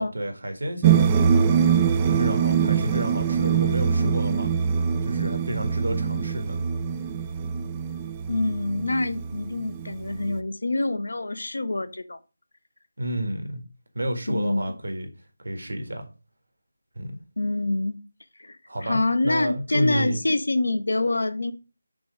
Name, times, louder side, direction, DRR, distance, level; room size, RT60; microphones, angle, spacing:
voice 1, 0.0-1.5 2.1-4.5 5.0-6.6 13.0-13.6 13.9-15.1 15.4-16.1 16.9-17.2 18.7-20.2, right 1 dB, 65° right, 1.7 m, -30 dB
sound 1, 0.8-10.4, right 7 dB, 15° right, 0.3 m, -23 dB
voice 2, 8.3-12.2 14.3-14.7 17.4-18.0 18.4-18.6 18.8-21.5, left 2 dB, 60° left, 0.7 m, -26 dB
6.1 x 3.1 x 5.0 m
figure-of-eight pair, 160°, 0 cm